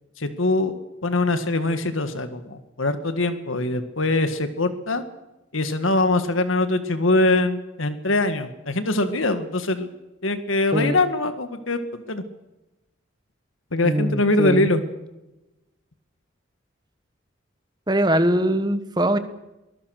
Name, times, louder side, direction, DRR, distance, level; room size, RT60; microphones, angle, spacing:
voice 1, 0.2-0.7 1.0-5.0 5.5-9.9 10.2-12.2 13.7-14.8, left 2 dB, 85° left, 9 dB, 1.9 m, -23 dB
voice 2, 13.8-14.7 17.9-19.2, right 1 dB, 20° right, 10 dB, 1.3 m, -22 dB
23.0 x 21.0 x 6.6 m, 0.98 s
head